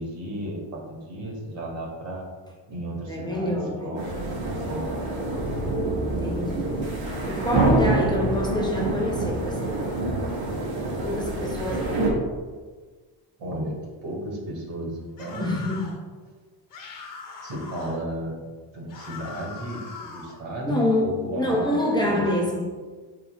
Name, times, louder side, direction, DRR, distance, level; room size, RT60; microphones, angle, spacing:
voice 1, 0.0-2.3 2.7-4.9 13.4-15.6 17.4-18.4 18.7-22.2, right 1 dB, 80° right, -1 dB, 2.0 m, -34 dB
voice 2, 3.1-4.0 6.0-6.7 7.3-10.0 10.9-12.1 15.4-15.9 20.6-22.7, left 1 dB, 10° left, -2 dB, 0.6 m, -26 dB
sound 1, 4.0-12.1, right 2 dB, 55° right, 1.7 m, -27 dB
sound 2, 15.2-16.0 16.7-18.0 18.9-20.4, left 4 dB, 45° left, 1.2 m, -41 dB
11.5 x 4.5 x 2.3 m, 1.4 s
cardioid pair, 180°, 44 cm